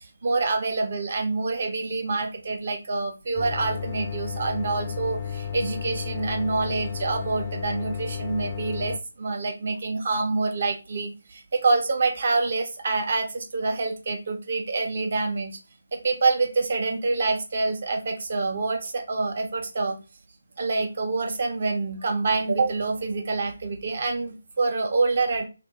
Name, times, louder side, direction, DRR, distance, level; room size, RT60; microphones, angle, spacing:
voice 1, 0.2-15.6 15.9-20.0 20.6-25.4, right 3 dB, 45° right, 3 dB, 0.8 m, -26 dB
sound 1, 3.4-9.0, left 7 dB, 30° left, 0.4 m, -33 dB
3.4 x 2.2 x 2.9 m, 0.29 s
figure-of-eight pair, 150°, 0 cm